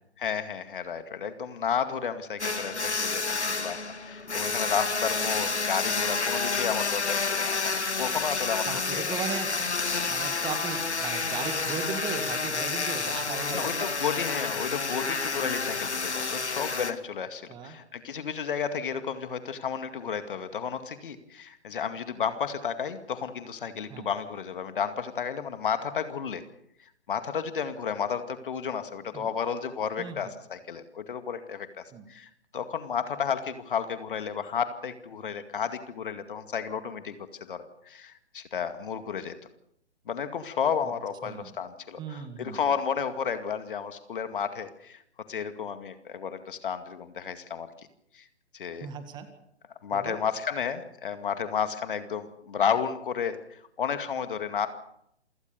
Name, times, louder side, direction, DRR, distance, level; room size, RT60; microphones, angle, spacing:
voice 1, 0.2-9.0 13.5-26.4 27.1-31.8 32.1-37.2 37.5-39.3 40.1-45.0 45.3-47.7 48.1-48.3 48.5-48.9 49.8-54.7, left 7 dB, 50° left, 10 dB, 2.2 m, -32 dB
sound 1, 2.4-16.9, left 4 dB, 75° left, 2.4 m, -29 dB
voice 2, 8.7-9.5 10.1-13.9 17.5-17.8 23.9-24.1 29.1-29.3 30.0-30.3 31.9-32.1 40.8-40.9 41.2-41.5 42.0-42.6 48.8-49.3 49.9-50.2, right 6 dB, 10° right, 9 dB, 1.9 m, -37 dB
27.5 x 18.0 x 7.0 m, 0.76 s
figure-of-eight pair, 135°, 34 cm